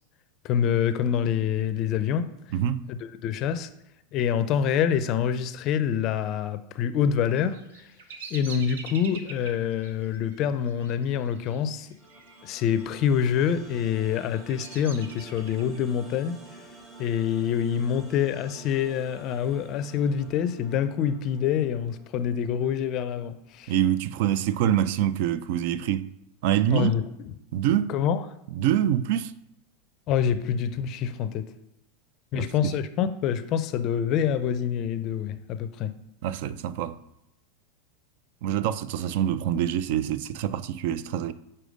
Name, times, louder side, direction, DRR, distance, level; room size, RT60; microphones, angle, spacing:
voice 1, 0.4-2.3 2.9-3.7 4.1-7.9 8.3-11.9 12.4-16.6 17.0-23.7 26.7-27.3 27.9-28.2 30.1-31.5 32.3-36.0, left 8 dB, 45° left, 0.4 m, -26 dB
voice 2, 2.5-2.9 23.7-26.1 26.4-26.9 27.5-27.9 28.6-29.3 32.3-32.5 36.2-37.0 38.4-41.3, right 11 dB, 65° right, 0.3 m, -25 dB
Bird vocalization bird call bird song, 7.3-12.4 12.6-13.2 13.8-15.8, right 5 dB, 85° right, 0.8 m, -44 dB
sound 1, 12.0-23.0, right 2 dB, 30° right, 1.8 m, -50 dB
4.9 x 4.3 x 5.1 m
supercardioid pair, 125°, 0 cm